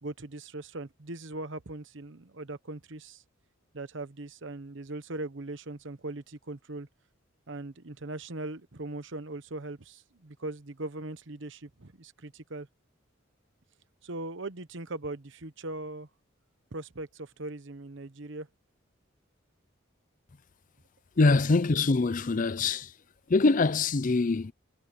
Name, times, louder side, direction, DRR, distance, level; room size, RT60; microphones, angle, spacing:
voice 1, 0.0-3.2 3.7-6.9 7.5-12.7 14.0-16.1 16.7-18.5, right 2 dB, 65° right, 1.1 m, -40 dB
voice 2, 21.2-22.9 23.3-24.5, left 3 dB, 40° left, 0.5 m, -24 dB
head